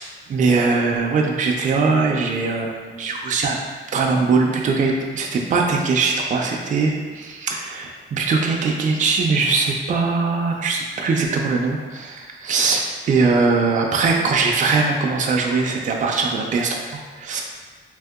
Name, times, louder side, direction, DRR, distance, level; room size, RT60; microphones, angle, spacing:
voice 1, 0.3-3.6 3.9-17.4, right 4 dB, 40° right, 0 dB, 0.4 m, -21 dB
2.8 x 2.7 x 3.5 m, 1.5 s
wide cardioid pair, 175°, 20 cm